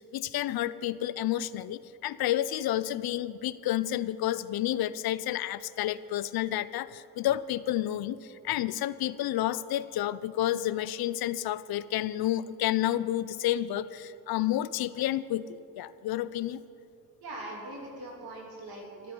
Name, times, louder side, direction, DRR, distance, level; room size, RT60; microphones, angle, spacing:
voice 1, 0.0-16.6, left 13 dB, 85° left, 17 dB, 0.5 m, -30 dB
voice 2, 17.2-19.1, right 2 dB, 85° right, -1 dB, 3.1 m, -41 dB
13.5 x 12.5 x 5.3 m, 2.6 s
cardioid pair, 85°, 36 cm